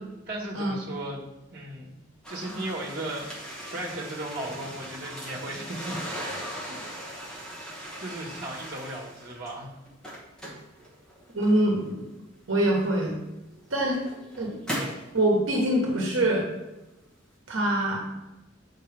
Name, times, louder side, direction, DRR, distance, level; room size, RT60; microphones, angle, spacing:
voice 1, 0.3-1.9 2.3-6.0 6.6-6.8 7.3-7.4 8.0-9.7, right 1 dB, 50° right, -3 dB, 1.5 m, -36 dB
sound 1, 2.2-9.5 9.9-11.9 12.8-12.9 13.6-15.1, equal, 5° left, 1.2 m, -38 dB
voice 2, 11.3-12.0 12.5-13.2 13.7-14.0 14.4-14.5 15.1-16.5 17.5-18.0, right 1 dB, 80° right, -1 dB, 1.2 m, -24 dB
6.8 x 4.4 x 3.4 m, 1.0 s
head